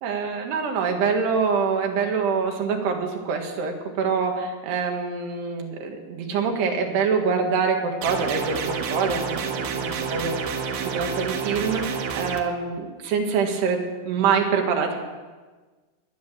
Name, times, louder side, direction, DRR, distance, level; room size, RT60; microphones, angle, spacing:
voice 1, 0.0-15.0, right 5 dB, 85° right, 3 dB, 3.7 m, -25 dB
sound 1, 8.0-12.4, right 5 dB, 65° right, 2.9 m, -29 dB
15.5 x 11.0 x 7.4 m, 1.3 s
omnidirectional pair, 4.7 m